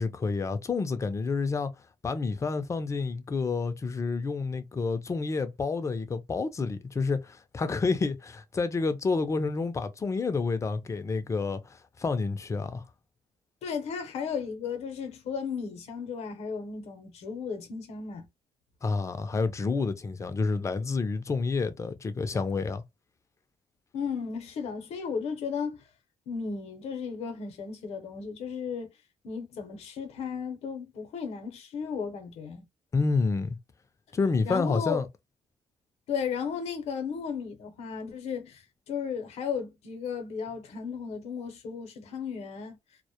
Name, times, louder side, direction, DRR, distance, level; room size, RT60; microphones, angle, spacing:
voice 1, 0.0-1.7 2.0-12.8 18.8-22.8 32.9-33.6 34.1-35.1, left 4 dB, 25° left, 0.5 m, -29 dB
voice 2, 13.6-18.3 23.9-25.8 26.3-28.9 29.2-32.7 34.4-35.0 36.1-42.8, left 6 dB, 75° left, 0.7 m, -35 dB
2.1 x 2.1 x 2.8 m
cardioid pair, 90°, 11 cm